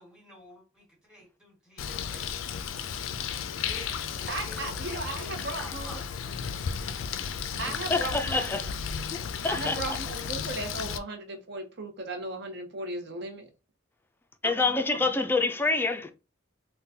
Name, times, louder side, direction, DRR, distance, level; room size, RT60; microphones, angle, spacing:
voice 1, 0.0-2.5 3.5-6.0, equal, 5° right, 1.4 m, -49 dB
Bird, 1.8-11.0, left 7 dB, 85° left, 0.4 m, -34 dB
voice 2, 4.3-5.9 7.6-8.6 9.5-13.5 15.0-15.1, right 2 dB, 60° right, 0.7 m, -36 dB
voice 3, 7.9-8.7 9.1-10.0 14.4-16.1, left 3 dB, 10° left, 0.3 m, -27 dB
3.7 x 2.2 x 2.7 m
head